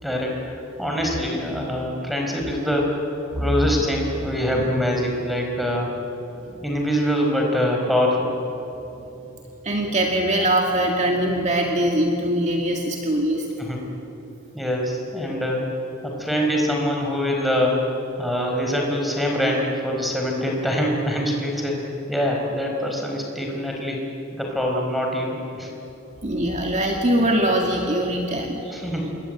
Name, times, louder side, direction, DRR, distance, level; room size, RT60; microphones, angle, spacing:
voice 1, 0.0-5.9 6.6-8.3 13.6-13.8 14.5-15.6 16.0-17.9 18.2-25.7 28.7-29.1, equal, ahead, 0 dB, 5.0 m, -24 dB
voice 2, 9.6-13.5 26.2-28.9, right 1 dB, 35° right, 1 dB, 2.1 m, -22 dB
27.5 x 22.5 x 9.2 m, 3.0 s
head